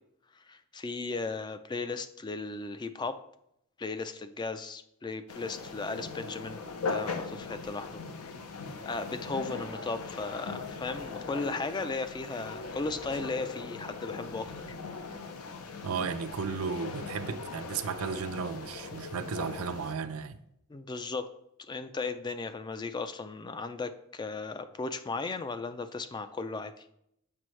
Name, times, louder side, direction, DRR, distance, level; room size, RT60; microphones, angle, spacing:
voice 1, 0.5-3.2 3.8-8.0 8.9-14.5 20.7-21.3 21.7-26.7, left 3 dB, 20° left, 0.3 m, -36 dB
sound 1, 5.3-19.9, left 4 dB, 85° left, 0.7 m, -40 dB
voice 2, 15.8-20.4, right 5 dB, 75° right, 0.5 m, -34 dB
7.5 x 6.1 x 3.2 m
head